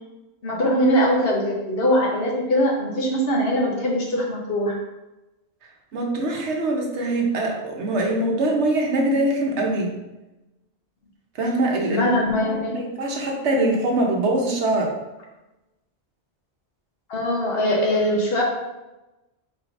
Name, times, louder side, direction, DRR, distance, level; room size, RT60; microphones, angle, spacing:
voice 1, 0.4-4.8 11.9-12.8 17.1-18.4, equal, 60° left, -2 dB, 1.2 m, -21 dB
voice 2, 5.9-9.9 11.4-12.0 12.7-14.9, right 2 dB, 90° right, 0 dB, 1.2 m, -23 dB
4.8 x 4.1 x 2.5 m, 1.0 s
omnidirectional pair, 1.1 m